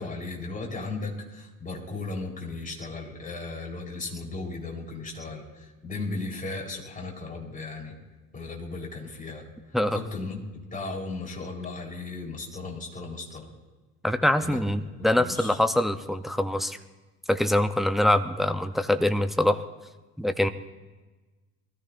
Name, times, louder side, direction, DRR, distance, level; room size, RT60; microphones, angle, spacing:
voice 1, 0.0-8.0 8.3-9.4 9.9-13.5 14.4-14.6 15.0-15.6, left 3 dB, 15° left, -1 dB, 4.1 m, -36 dB
voice 2, 14.0-16.8 17.3-19.6 20.2-20.5, left 1 dB, ahead, 9 dB, 0.6 m, -24 dB
23.0 x 14.0 x 2.6 m, 1.2 s
figure-of-eight pair, 70°, 48 cm